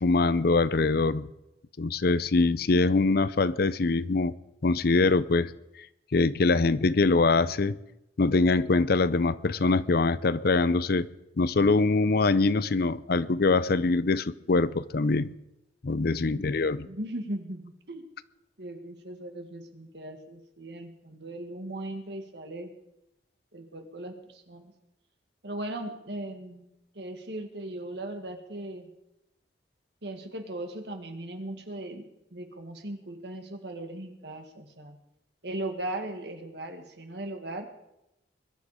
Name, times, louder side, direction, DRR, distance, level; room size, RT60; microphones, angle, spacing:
voice 1, 0.0-1.3 1.8-4.3 4.6-5.5 6.1-7.8 8.2-11.1 11.4-15.3 15.8-16.9, left 3 dB, 60° left, 0.6 m, -23 dB
voice 2, 16.8-18.0 18.6-22.7 23.5-24.7 25.4-26.7 26.9-28.9 30.0-35.0 35.4-37.7, right 1 dB, 65° right, 2.0 m, -38 dB
21.5 x 12.0 x 5.0 m
head